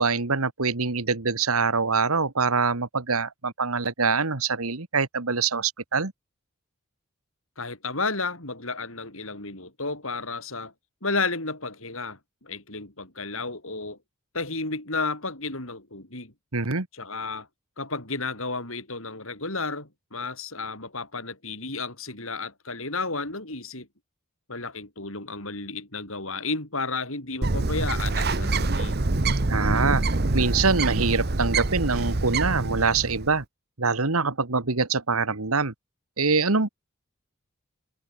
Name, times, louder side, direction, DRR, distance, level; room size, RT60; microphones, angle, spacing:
voice 1, 0.0-6.1 16.5-16.9 29.5-30.0 30.3-33.4 33.8-35.7 36.2-36.7, right 4 dB, 80° right, 1.8 m, -24 dB
voice 2, 7.6-10.7 11.0-14.0 14.3-16.3 16.9-17.5 17.8-23.9 24.5-29.0, left 3 dB, 65° left, 7.3 m, -32 dB
Bird, 27.4-33.3, right 2 dB, 45° right, 1.1 m, -25 dB
head